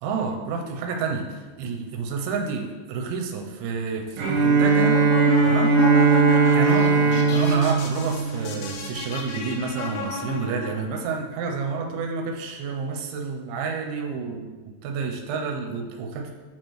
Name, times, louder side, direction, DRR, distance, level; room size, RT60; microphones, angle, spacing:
voice 1, 0.0-5.0 5.5-5.7 6.5-14.5 14.8-16.3, right 5 dB, 85° right, 2 dB, 3.0 m, -29 dB
Bowed string instrument, 4.2-9.1, right 5 dB, 70° right, 3.0 m, -19 dB
sound 1, 4.5-10.8, left 5 dB, 85° left, 2.2 m, -30 dB
8.0 x 4.4 x 3.1 m, 1.4 s
omnidirectional pair, 5.3 m